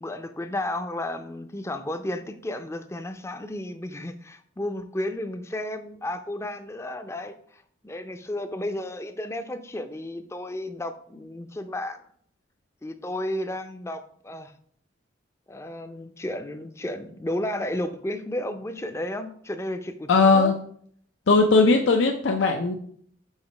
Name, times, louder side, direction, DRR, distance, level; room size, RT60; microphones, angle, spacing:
voice 1, 0.0-12.0 12.8-14.5 15.5-20.5, left 1 dB, 15° left, 9 dB, 0.4 m, -33 dB
voice 2, 20.1-20.5 21.3-22.8, left 3 dB, 85° left, 4 dB, 0.5 m, -18 dB
4.8 x 4.0 x 5.3 m, 0.62 s
head